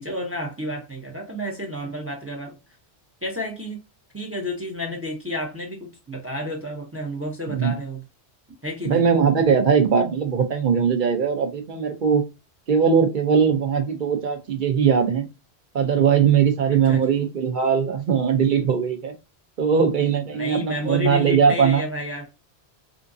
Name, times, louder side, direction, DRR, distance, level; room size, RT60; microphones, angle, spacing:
voice 1, 0.0-2.6 3.2-3.8 4.1-8.0 8.6-9.0 16.7-17.1 20.3-22.3, left 1 dB, 15° right, 0.5 m, -31 dB
voice 2, 7.5-7.8 8.8-12.2 12.7-15.3 15.7-19.1 19.6-21.8, right 6 dB, 55° right, 0.7 m, -20 dB
3.6 x 2.6 x 2.5 m
omnidirectional pair, 1.1 m